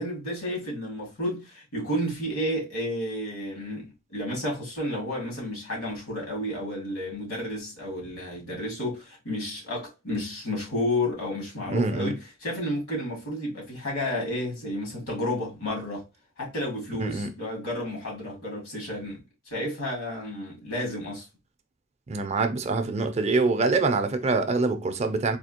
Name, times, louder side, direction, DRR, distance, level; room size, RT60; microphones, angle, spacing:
voice 1, 0.0-16.0 16.4-21.3, left 1 dB, 80° left, 2.3 m, -31 dB
voice 2, 11.7-12.2 17.0-17.3 22.1-25.4, right 3 dB, 30° right, 0.4 m, -25 dB
4.2 x 2.7 x 2.8 m
head